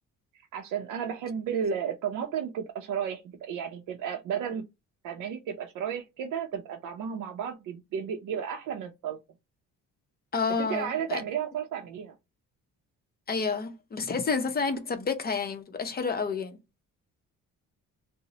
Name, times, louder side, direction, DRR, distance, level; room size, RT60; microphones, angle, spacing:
voice 1, 0.3-4.6 5.0-9.2 10.6-12.2, right 8 dB, 75° right, 0.5 m, -33 dB
voice 2, 10.3-11.2 13.3-16.6, left 5 dB, 30° left, 0.6 m, -30 dB
2.9 x 2.0 x 2.7 m
cardioid pair, 115°, 32 cm